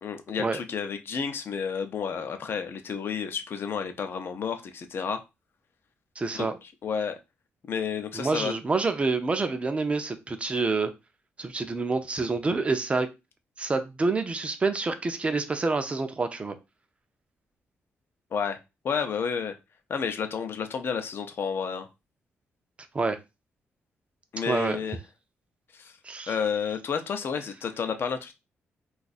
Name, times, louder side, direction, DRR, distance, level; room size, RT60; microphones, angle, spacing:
voice 1, 0.0-5.2 6.3-6.5 6.8-7.2 7.7-8.5 18.3-18.6 18.8-19.5 19.9-21.9 24.3-25.0 25.7-25.9 26.3-28.3, left 6 dB, 55° left, 0.6 m, -31 dB
voice 2, 6.2-6.6 8.1-10.9 11.4-13.1 13.6-16.5 22.9-23.2 24.5-24.8 26.0-26.3, right 3 dB, 25° right, 0.5 m, -27 dB
2.6 x 2.4 x 4.0 m
cardioid pair, 110°, 5 cm